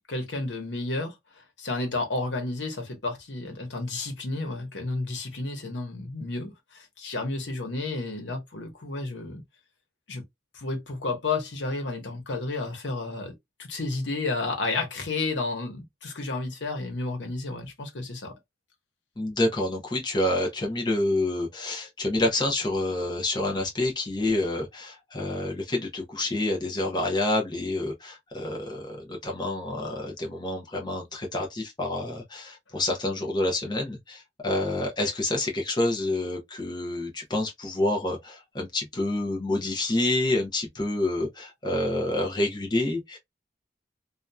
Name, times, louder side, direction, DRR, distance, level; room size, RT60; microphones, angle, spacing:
voice 1, 0.1-9.4 10.1-10.2 10.5-13.3 13.6-18.3, left 3 dB, 80° left, 1.0 m, -31 dB
voice 2, 19.2-43.2, left 1 dB, 25° left, 0.8 m, -28 dB
2.8 x 2.4 x 2.2 m
head